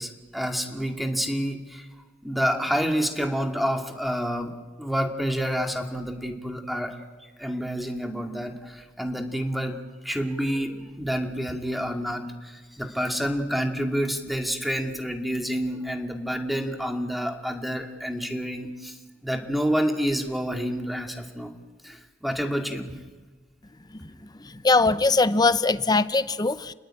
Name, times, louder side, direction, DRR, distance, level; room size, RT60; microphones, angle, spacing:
voice 1, 0.0-1.8 2.2-4.5 4.8-6.9 7.4-9.8 10.0-18.9 19.2-21.5 21.8-22.9, equal, ahead, 4 dB, 2.4 m, -28 dB
voice 2, 24.6-26.7, left 3 dB, 20° left, 13 dB, 0.8 m, -21 dB
29.5 x 20.5 x 9.0 m, 1.3 s
head